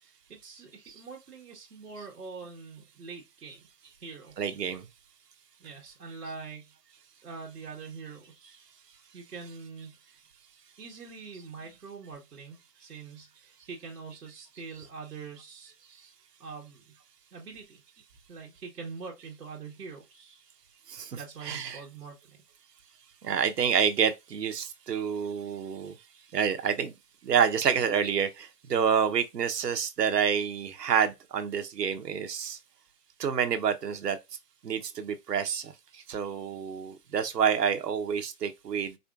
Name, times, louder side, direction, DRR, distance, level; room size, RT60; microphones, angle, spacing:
voice 1, 0.0-3.7 4.0-4.3 5.6-6.7 7.2-8.7 9.1-10.2 10.8-15.7 16.4-16.9 17.3-17.8 18.3-20.5 21.1-22.4, right 5 dB, 65° right, 1.3 m, -44 dB
voice 2, 4.4-4.8 20.9-21.8 23.2-25.9 26.3-26.9 27.2-32.6 33.2-34.2 34.6-35.7 36.1-39.0, right 7 dB, 85° right, 0.9 m, -28 dB
4.3 x 2.6 x 2.4 m
hypercardioid pair, 175°, 47 cm